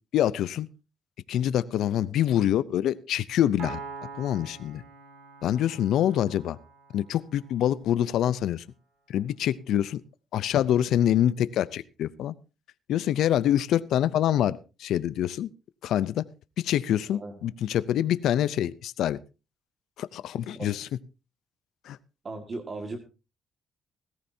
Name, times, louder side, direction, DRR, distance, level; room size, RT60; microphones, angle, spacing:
voice 1, 0.1-0.7 1.3-3.8 4.2-4.8 5.4-6.6 6.9-8.6 9.1-10.0 10.3-12.3 12.9-15.5 15.8-16.2 16.6-19.2 20.0-20.9 21.8-22.0, left 11 dB, 80° left, 16 dB, 0.5 m, -25 dB
Piano, 3.6-7.2, right 5 dB, 75° right, 6.5 m, -43 dB
voice 2, 17.1-17.4 20.3-20.8 22.2-23.0, right 3 dB, 35° right, 4 dB, 1.8 m, -37 dB
17.5 x 14.5 x 2.7 m, 0.30 s
cardioid pair, 90°, 0 cm